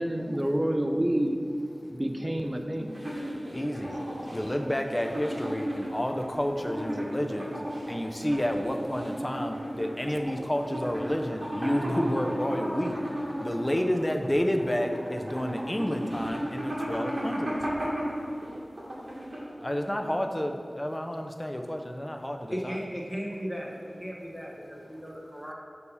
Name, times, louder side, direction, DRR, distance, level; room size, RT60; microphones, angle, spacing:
voice 1, 0.0-1.4 1.9-3.0 15.3-15.5 16.3-16.5, right 1 dB, 25° right, 5 dB, 0.5 m, -28 dB
sound 1, 2.9-19.7, equal, 45° right, 1.3 m, -34 dB
voice 2, 3.5-4.0 4.3-7.5 7.9-13.0 13.4-17.5 19.6-22.5, equal, 20° left, 4 dB, 0.5 m, -30 dB
voice 3, 22.5-23.7 24.0-25.5, equal, 5° right, -2 dB, 1.2 m, -36 dB
6.4 x 2.8 x 5.4 m, 2.6 s
cardioid pair, 40°, 0 cm